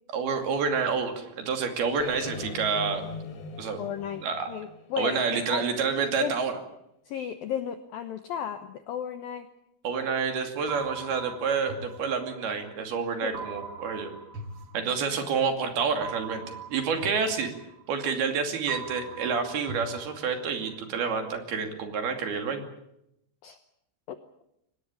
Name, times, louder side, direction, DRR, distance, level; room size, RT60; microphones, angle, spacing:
voice 1, 0.1-3.1 3.6-3.8 4.2-4.5 5.0-6.6 9.8-14.1 14.7-17.5 17.9-22.7, right 5 dB, 60° right, 6 dB, 4.2 m, -28 dB
sound 1, 2.0-6.1, left 4 dB, 60° left, 4.8 m, -40 dB
voice 2, 3.8-5.8 6.2-6.3 7.1-9.5 13.2-13.4 23.4-23.6 24.1-24.2, left 9 dB, 80° left, 10 dB, 2.1 m, -34 dB
sound 2, 10.7-12.7 13.3-15.4 16.0-18.3 18.7-20.7, right 4 dB, 40° right, 2.1 m, -42 dB
23.5 x 18.5 x 8.7 m, 0.79 s
omnidirectional pair, 5.5 m